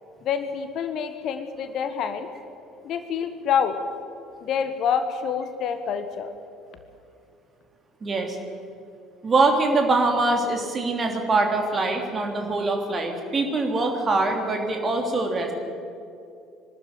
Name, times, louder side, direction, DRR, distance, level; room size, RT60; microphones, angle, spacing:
voice 1, 0.2-2.3 2.8-3.8 4.4-6.3, left 7 dB, 50° left, 9 dB, 1.3 m, -27 dB
voice 2, 8.0-8.4 9.2-15.5, right 3 dB, 30° right, 3 dB, 3.2 m, -23 dB
22.5 x 12.5 x 9.5 m, 2.6 s
figure-of-eight pair, 60°, 0 cm